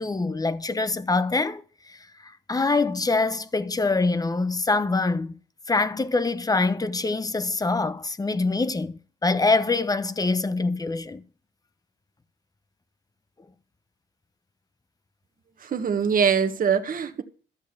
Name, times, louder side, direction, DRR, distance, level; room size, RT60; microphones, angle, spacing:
voice 1, 0.0-1.6 1.9-2.0 2.2-5.3 5.7-11.2, left 3 dB, 20° left, 1.0 m, -24 dB
voice 2, 15.6-17.2, right 6 dB, 45° right, 1.5 m, -23 dB
13.5 x 6.5 x 6.9 m
cardioid pair, 90°, 20 cm